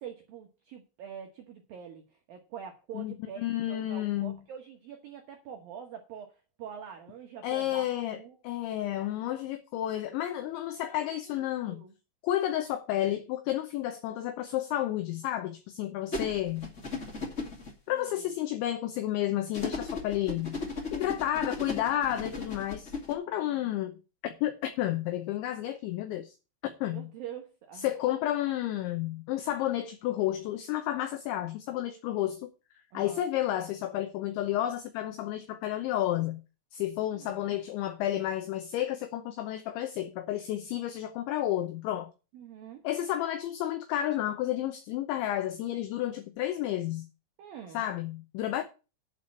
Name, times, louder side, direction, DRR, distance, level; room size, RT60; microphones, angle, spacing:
voice 1, 0.0-6.3 6.6-7.9 8.1-8.4 8.9-9.1 10.4-11.9 17.9-18.2 23.4-23.9 26.9-27.9 32.9-33.3 37.1-37.6 42.3-42.8 47.4-47.8, right 8 dB, 85° right, 2.0 m, -45 dB
voice 2, 2.9-4.4 7.4-11.8 12.2-16.7 17.9-20.6 20.9-26.3 26.6-27.1 27.8-32.5 32.9-36.4 36.7-42.1 42.8-47.1 47.7-48.6, left 13 dB, 75° left, 2.9 m, -31 dB
sound 1, 16.1-17.7 19.5-23.1, left 3 dB, 50° left, 0.8 m, -36 dB
11.0 x 5.1 x 8.4 m
omnidirectional pair, 6.0 m